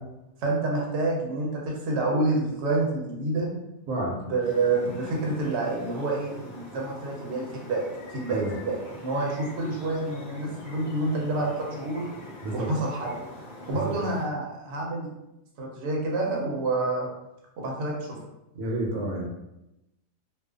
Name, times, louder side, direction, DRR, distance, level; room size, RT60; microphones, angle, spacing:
voice 1, 0.4-3.5 4.2-7.8 8.1-12.0 12.5-13.1 13.7-15.1 15.6-17.1 17.6-18.2, right 2 dB, 60° right, -3 dB, 0.9 m, -28 dB
Spring Evening Ambience, 4.4-14.2, left 1 dB, 60° left, 0.8 m, -44 dB
voice 2, 18.5-19.3, right 2 dB, 85° right, -1 dB, 1.0 m, -29 dB
2.4 x 2.4 x 2.4 m, 0.91 s
omnidirectional pair, 1.4 m